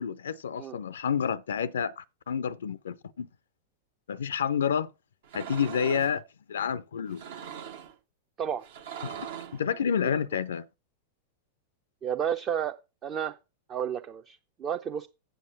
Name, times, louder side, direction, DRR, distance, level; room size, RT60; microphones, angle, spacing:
voice 1, 0.0-3.3 4.1-4.9 5.3-6.2 6.5-7.2 9.0-9.2 9.5-10.7, left 7 dB, 65° left, 0.4 m, -29 dB
sound 1, 5.2-6.2 7.1-7.9 8.6-9.6, right 8 dB, 60° right, 0.9 m, -40 dB
voice 2, 12.0-12.8 13.0-13.4 13.7-15.1, right 8 dB, 30° right, 0.6 m, -31 dB
8.0 x 7.1 x 5.5 m
figure-of-eight pair, 90°, 0 cm